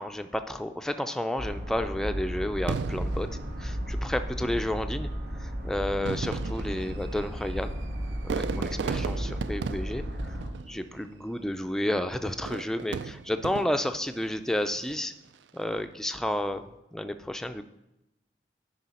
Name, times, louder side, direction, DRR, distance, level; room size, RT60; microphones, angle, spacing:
voice 1, 0.0-3.3 3.6-5.1 5.4-7.8 8.2-10.4 10.6-15.1 15.5-16.6 16.9-17.6, left 1 dB, 5° left, 8 dB, 0.3 m, -31 dB
sound 1, 1.4-10.5, equal, 55° right, 1.6 m, -34 dB
Fireworks, 2.7-4.3 5.1-5.2 5.9-11.2 12.3-14.0 14.6-15.1, right 5 dB, 75° right, 0.3 m, -36 dB
9.9 x 5.0 x 4.2 m, 0.92 s
head